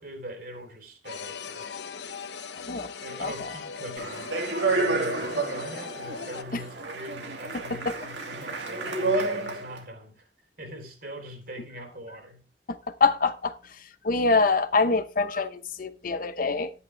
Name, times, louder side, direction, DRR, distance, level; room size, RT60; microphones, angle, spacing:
voice 1, 0.0-1.7 3.0-10.3 10.6-12.5, right 1 dB, 60° right, 3.8 m, -42 dB
sound 1, 1.0-6.4, left 5 dB, 85° left, 0.9 m, -39 dB
voice 2, 3.2-3.5 13.0-13.5 14.0-16.7, left 4 dB, 50° left, 0.9 m, -24 dB
Speech, 4.0-9.8, right 3 dB, 90° right, 2.5 m, -30 dB
11.5 x 9.8 x 3.3 m
head